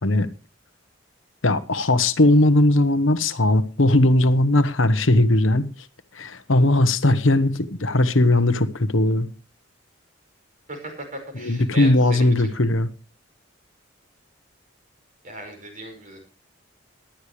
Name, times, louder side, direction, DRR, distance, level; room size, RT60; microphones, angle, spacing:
voice 1, 1.4-5.9 6.1-9.3 11.3-12.9, left 1 dB, 70° left, 1.1 m, -19 dB
voice 2, 10.7-12.5 15.2-16.2, right 2 dB, 40° right, 5.3 m, -37 dB
18.5 x 12.0 x 3.3 m
head